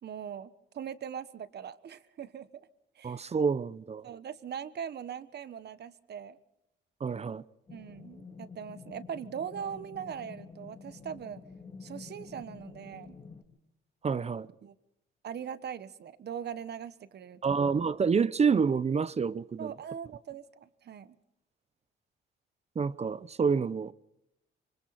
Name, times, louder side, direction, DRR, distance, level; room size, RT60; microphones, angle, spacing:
voice 1, 0.0-2.5 3.0-3.2 4.0-6.4 7.7-11.4 11.8-13.2 14.6-14.7 15.2-17.5 19.6-21.1, right 8 dB, 55° right, 1.3 m, -41 dB
voice 2, 3.0-4.1 7.0-7.4 14.0-14.5 17.4-19.7 22.8-23.9, right 5 dB, 35° right, 0.7 m, -28 dB
sound 1, 7.7-13.4, left 5 dB, 30° left, 3.2 m, -48 dB
26.5 x 25.0 x 4.2 m
cardioid pair, 90°, 20 cm